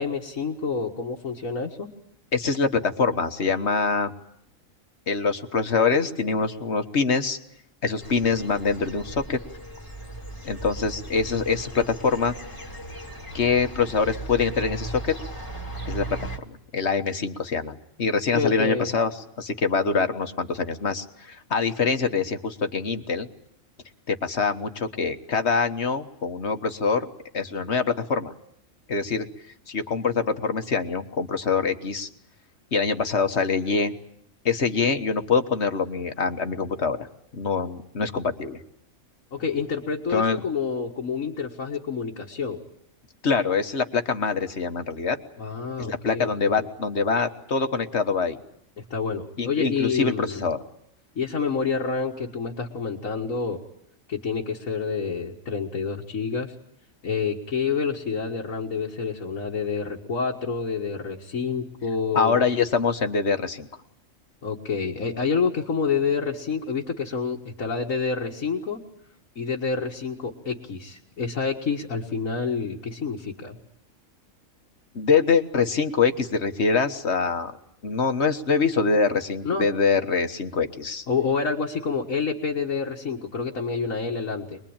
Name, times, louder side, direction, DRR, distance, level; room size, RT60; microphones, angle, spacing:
voice 1, 0.0-1.9 18.3-18.9 22.0-22.1 39.3-42.6 45.4-46.6 48.9-50.5 51.2-53.6 54.1-56.5 57.0-62.4 64.4-68.8 69.4-73.6 79.5-79.7 81.1-84.6, left 5 dB, 80° left, -2 dB, 2.2 m, -28 dB
voice 2, 2.3-4.1 5.1-7.4 7.8-9.4 10.4-12.3 13.3-15.1 15.9-16.1 16.5-23.3 24.1-27.1 27.3-28.3 28.9-29.3 29.7-32.1 32.7-33.9 34.4-37.1 37.3-38.6 40.1-40.4 43.2-45.2 45.8-48.4 49.4-50.6 62.1-63.7 74.9-77.6 77.8-81.0, left 5 dB, 55° left, 7 dB, 1.6 m, -24 dB
sound 1, 8.0-16.4, right 2 dB, 15° left, 2.1 m, -37 dB
24.5 x 21.5 x 8.8 m, 0.73 s
omnidirectional pair, 1.4 m